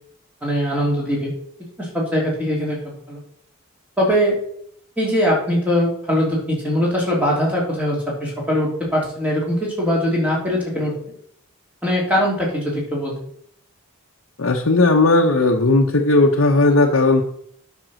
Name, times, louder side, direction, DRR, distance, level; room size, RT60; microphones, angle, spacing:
voice 1, 0.4-1.3 1.8-2.8 3.1-3.2 4.0-4.4 5.0-10.9 11.8-13.1, equal, 5° right, -3 dB, 3.0 m, -21 dB
voice 2, 14.4-17.2, left 2 dB, 75° left, 0 dB, 0.9 m, -16 dB
9.2 x 5.4 x 6.3 m, 0.67 s
head